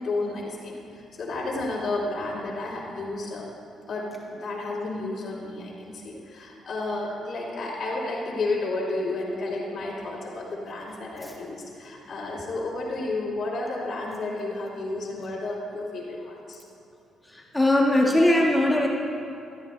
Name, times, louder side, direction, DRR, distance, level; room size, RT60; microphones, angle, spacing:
voice 1, 0.0-3.5 3.9-16.6, left 2 dB, 50° left, -9 dB, 2.7 m, -31 dB
voice 2, 17.2-18.9, left 1 dB, 10° left, -2 dB, 1.6 m, -21 dB
17.0 x 13.5 x 3.3 m, 2.6 s
cardioid pair, 90°, 0 cm